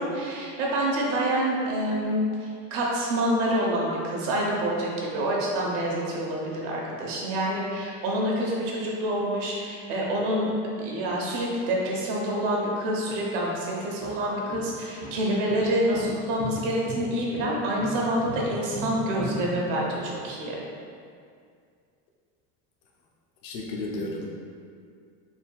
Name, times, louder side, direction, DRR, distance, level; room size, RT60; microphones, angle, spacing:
voice 1, 0.0-10.5 10.8-20.6, right 1 dB, 85° right, -3 dB, 1.1 m, -27 dB
sound 1, 13.8-20.3, equal, 25° left, 1.2 m, -37 dB
voice 2, 23.4-24.3, left 2 dB, 75° left, -2 dB, 0.8 m, -32 dB
4.5 x 3.5 x 2.3 m, 2.2 s
cardioid pair, 165°, 36 cm